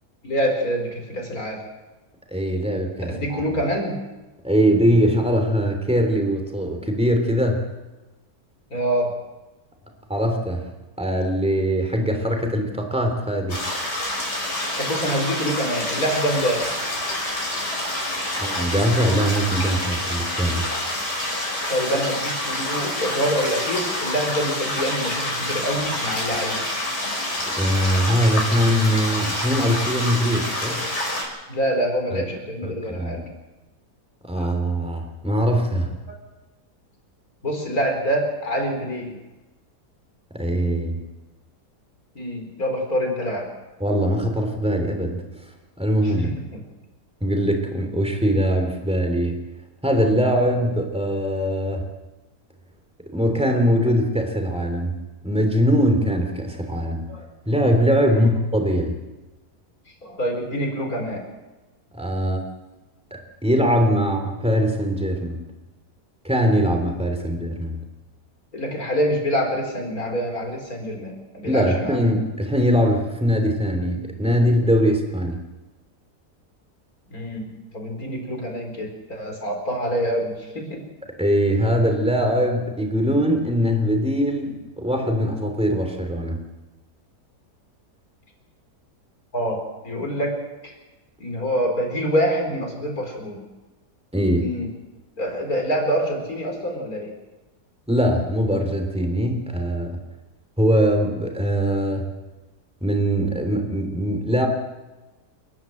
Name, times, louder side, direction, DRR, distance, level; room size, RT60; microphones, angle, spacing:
voice 1, 0.2-1.6 3.1-4.0 8.7-9.1 14.4-16.7 21.7-26.6 30.4-31.0 31.5-33.2 34.4-34.5 37.4-39.2 42.1-43.5 46.0-46.6 53.8-53.9 57.1-57.3 58.1-58.4 60.0-61.3 68.5-72.0 77.1-80.8 89.3-90.7 91.2-93.4 94.4-94.7 95.2-97.1, equal, 60° left, 2 dB, 4.9 m, -26 dB
voice 2, 2.3-3.4 4.4-7.6 10.1-10.7 11.0-13.7 18.4-20.7 27.6-30.9 32.1-32.2 32.6-33.2 34.2-35.9 40.3-41.0 43.8-45.2 45.8-46.3 47.2-49.4 49.8-51.8 53.1-57.1 57.4-59.0 61.9-62.4 63.1-65.4 66.2-67.7 71.4-75.4 81.2-86.4 94.1-94.5 97.9-100.0 100.6-102.0 102.8-104.5, equal, 5° right, 4 dB, 3.2 m, -22 dB
sound 1, 13.5-31.2, left 1 dB, 75° left, 5.9 m, -27 dB
29.5 x 11.0 x 7.9 m, 1.1 s
omnidirectional pair, 1.8 m